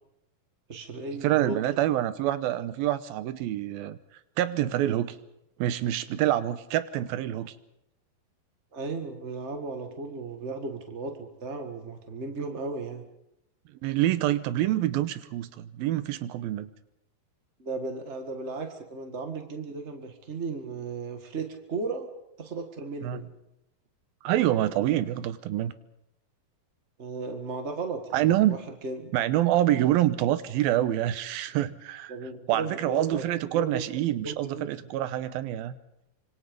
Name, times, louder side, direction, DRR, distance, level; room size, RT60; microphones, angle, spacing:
voice 1, 0.7-1.6 8.7-13.0 17.6-22.1 22.4-23.3 27.0-28.6 28.8-29.1 32.1-33.2 33.5-33.8 34.2-34.9, right 3 dB, 50° right, 5 dB, 0.8 m, -35 dB
voice 2, 1.2-4.0 4.4-5.2 5.6-7.5 13.8-16.7 23.0-23.2 24.2-25.7 28.1-28.6 29.1-32.2 32.5-35.8, right 13 dB, 80° right, 14 dB, 2.7 m, -26 dB
25.5 x 25.5 x 5.3 m, 0.84 s
omnidirectional pair, 4.3 m